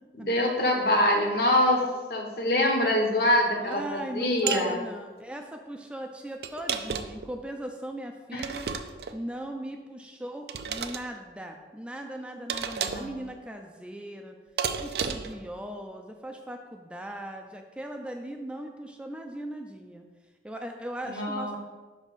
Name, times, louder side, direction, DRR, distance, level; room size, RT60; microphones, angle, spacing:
voice 1, 0.2-1.8 2.1-4.8 8.3-8.4 12.8-13.1 21.1-21.6, left 1 dB, 60° left, 1 dB, 1.1 m, -25 dB
voice 2, 3.6-8.7 9.1-14.4 14.8-20.1 20.4-21.6, right 1 dB, 5° right, 3 dB, 0.4 m, -38 dB
sound 1, 4.5-4.7 6.4-7.3 8.4-9.2 10.5-11.0 12.5-13.1 14.6-15.4, right 7 dB, 65° right, 0.4 m, -32 dB
5.7 x 4.1 x 6.2 m, 1.3 s
head